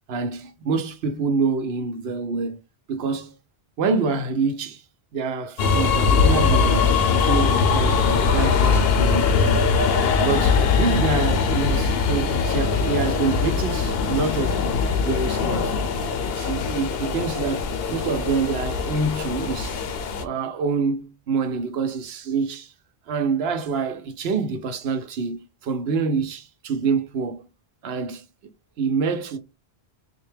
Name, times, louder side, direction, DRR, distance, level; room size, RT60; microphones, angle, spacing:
voice 1, 0.1-2.6 2.9-3.3 3.8-4.8 5.1-9.7 10.2-14.6 15.0-15.9 16.2-19.8 20.2-22.7 23.1-27.5 27.8-28.3 28.8-29.4, right 4 dB, 70° right, 0.9 m, -26 dB
sound 1, 5.6-20.2, left 5 dB, 70° left, 0.8 m, -21 dB
3.9 x 2.2 x 3.2 m
omnidirectional pair, 1.1 m